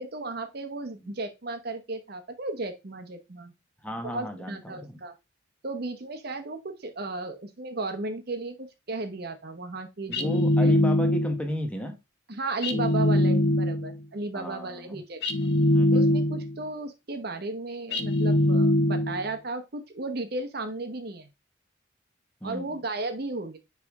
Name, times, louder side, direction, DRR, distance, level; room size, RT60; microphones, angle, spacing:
voice 1, 0.0-3.5 4.0-5.1 5.6-10.7 12.3-15.2 15.9-21.3 22.4-23.6, right 2 dB, 50° right, 0.9 m, -35 dB
voice 2, 3.8-5.0 10.1-11.9 14.3-15.0 15.7-16.2 22.4-22.8, equal, 5° left, 1.0 m, -35 dB
sound 1, 10.1-11.5 12.6-14.0 15.2-16.6 17.9-19.3, left 1 dB, 55° left, 0.8 m, -22 dB
9.9 x 3.4 x 3.5 m
head